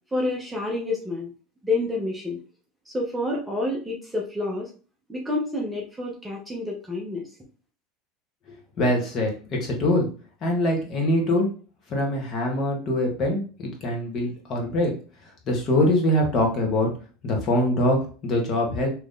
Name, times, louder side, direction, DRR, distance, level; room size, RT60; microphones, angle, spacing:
voice 1, 0.1-1.3 1.6-2.4 2.9-4.7 5.1-7.3, left 2 dB, 5° right, -2 dB, 0.6 m, -28 dB
voice 2, 8.8-10.1 10.4-11.5 11.9-14.9 15.5-16.9 17.2-18.9, left 1 dB, 35° left, 0 dB, 1.1 m, -23 dB
2.9 x 2.6 x 3.7 m, 0.38 s
supercardioid pair, 140°, 0 cm